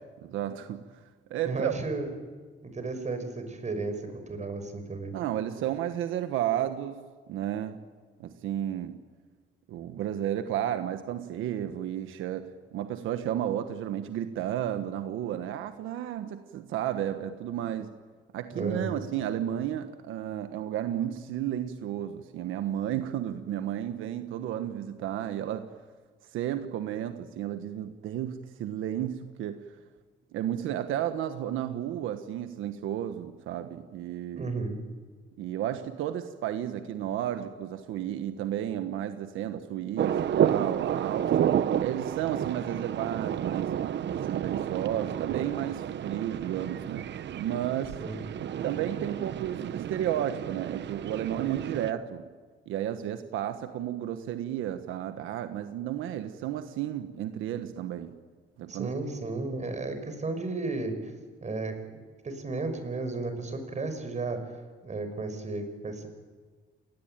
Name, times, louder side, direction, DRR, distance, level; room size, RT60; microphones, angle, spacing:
voice 1, 0.2-0.8 1.3-1.7 5.1-7.0 7.3-7.8 8.2-9.0 9.7-17.9 18.3-25.7 26.3-29.6 30.3-34.5 35.4-41.5 41.8-43.7 44.3-47.1 47.4-48.0 48.6-52.2 52.7-58.1 58.6-58.9, right 11 dB, 90° right, 8 dB, 1.4 m, -32 dB
voice 2, 1.5-2.1 2.6-5.2 18.5-18.9 34.3-34.8 48.0-48.2 58.7-61.1 61.4-61.8 62.2-64.4 64.8-66.1, right 3 dB, 35° right, 8 dB, 6.0 m, -33 dB
sound 1, 40.0-51.9, right 10 dB, 65° right, 1.1 m, -31 dB
29.5 x 19.0 x 9.2 m, 1.5 s
cardioid pair, 90°, 20 cm